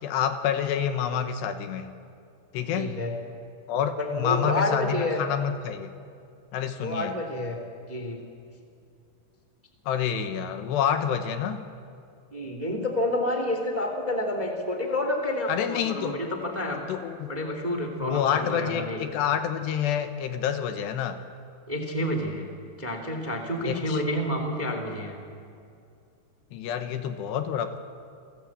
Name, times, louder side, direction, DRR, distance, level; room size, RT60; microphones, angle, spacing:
voice 1, 0.0-1.9 2.5-2.9 3.7-5.9 6.5-7.1 9.9-11.6 15.5-16.2 16.9-17.3 18.0-21.2 23.6-24.0 26.5-27.8, left 8 dB, 75° left, 8 dB, 3.1 m, -28 dB
voice 2, 2.7-3.1 4.0-5.2 6.8-7.6 7.9-8.2 12.3-16.8 17.3-19.0 21.7-22.4 22.8-25.2, left 1 dB, 15° right, 4 dB, 1.6 m, -29 dB
30.0 x 19.5 x 8.6 m, 2.5 s
omnidirectional pair, 5.2 m